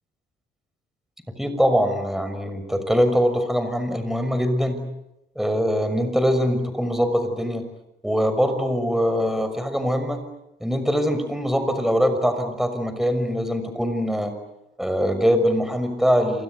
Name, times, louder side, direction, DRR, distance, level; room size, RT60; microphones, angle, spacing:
voice 1, 1.4-4.8 5.4-7.6 8.0-10.2 10.6-14.3 14.8-16.4, equal, ahead, 8 dB, 6.2 m, -22 dB
27.5 x 25.0 x 8.3 m, 0.86 s
cardioid pair, 90°, 20 cm